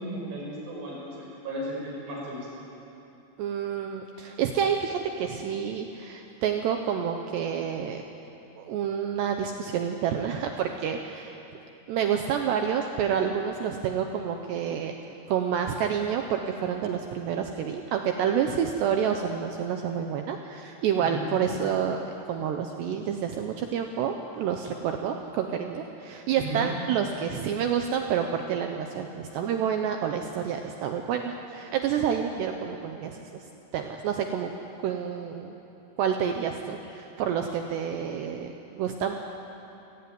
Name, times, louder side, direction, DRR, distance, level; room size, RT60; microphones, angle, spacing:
voice 1, 0.0-2.5 21.0-21.4 26.4-26.7, right 1 dB, 60° right, -3 dB, 8.4 m, -35 dB
voice 2, 3.4-8.0 8.6-11.4 11.9-14.9 15.3-33.4 33.7-34.5 34.8-35.5 36.0-39.2, right 8 dB, 75° right, 4 dB, 2.8 m, -29 dB
28.0 x 17.0 x 9.6 m, 2.9 s
omnidirectional pair, 5.8 m